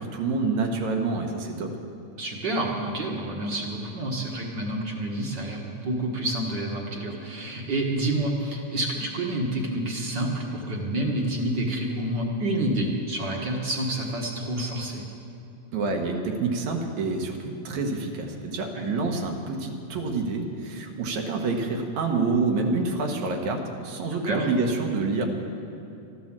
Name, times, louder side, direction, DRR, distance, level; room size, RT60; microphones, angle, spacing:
voice 1, 0.0-1.7 15.7-17.4 17.6-25.3, right 3 dB, 75° right, 3 dB, 2.5 m, -27 dB
voice 2, 2.2-15.0 18.8-18.9 24.2-24.5, right 1 dB, 45° right, 0 dB, 1.6 m, -28 dB
13.5 x 11.0 x 7.3 m, 2.8 s
omnidirectional pair, 3.3 m